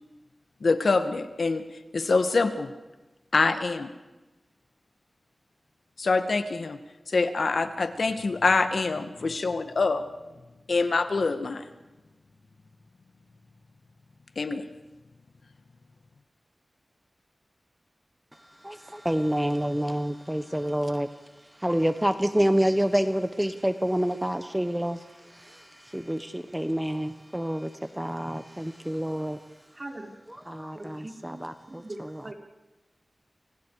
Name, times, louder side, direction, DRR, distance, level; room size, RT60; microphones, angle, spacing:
voice 1, 0.6-1.6 1.9-2.7 3.3-3.9 6.0-6.8 7.1-10.1 10.7-11.6 14.4-14.7, left 3 dB, 75° left, 9 dB, 2.0 m, -25 dB
voice 2, 18.6-21.1 21.6-29.4 30.3-32.3, equal, 10° right, 10 dB, 1.3 m, -28 dB
voice 3, 29.8-30.1 30.8-31.4 31.8-32.0 32.2-32.3, right 2 dB, 45° right, 1 dB, 5.3 m, -40 dB
30.0 x 28.5 x 5.1 m, 1.1 s
wide cardioid pair, 55°, 0 cm